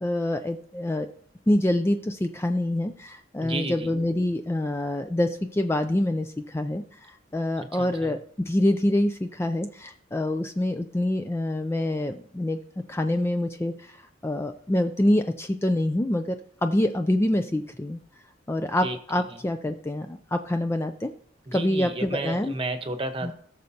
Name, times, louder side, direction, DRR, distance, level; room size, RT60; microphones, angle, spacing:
voice 1, 0.0-1.1 1.5-8.2 8.5-12.6 12.9-16.4 16.6-18.0 18.5-21.1 21.5-22.5 23.2-23.3, left 1 dB, 15° left, 7 dB, 0.3 m, -26 dB
voice 2, 3.4-3.9 7.6-8.2 18.8-19.4 21.5-23.3, right 2 dB, 30° right, 7 dB, 0.9 m, -33 dB
18.0 x 6.4 x 2.8 m, 0.63 s
head